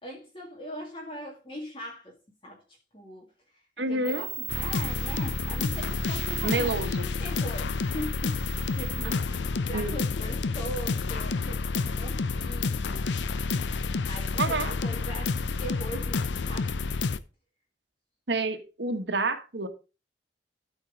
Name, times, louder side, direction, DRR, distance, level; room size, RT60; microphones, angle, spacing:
voice 1, 0.0-2.1 2.4-3.3 3.9-13.1 14.0-16.8, equal, 30° left, 2.0 m, -41 dB
voice 2, 3.8-4.3 6.4-7.1 9.0-9.1 9.7-10.0 14.4-14.7 18.3-19.7, right 2 dB, 80° right, 1.4 m, -29 dB
sound 1, 4.0-9.1, right 6 dB, 15° right, 0.9 m, -40 dB
sound 2, 4.5-17.2, left 4 dB, 90° left, 0.6 m, -29 dB
12.5 x 4.6 x 5.0 m
head